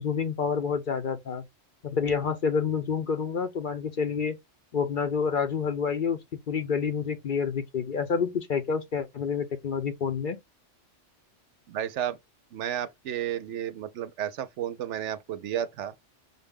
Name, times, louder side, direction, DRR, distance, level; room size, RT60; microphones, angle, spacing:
voice 1, 0.0-1.4 1.8-4.4 4.7-6.2 6.5-10.4, left 6 dB, 50° left, 0.7 m, -28 dB
voice 2, 11.7-12.2 12.5-15.9, right 10 dB, 75° right, 0.9 m, -32 dB
5.5 x 2.2 x 3.5 m
omnidirectional pair, 1.2 m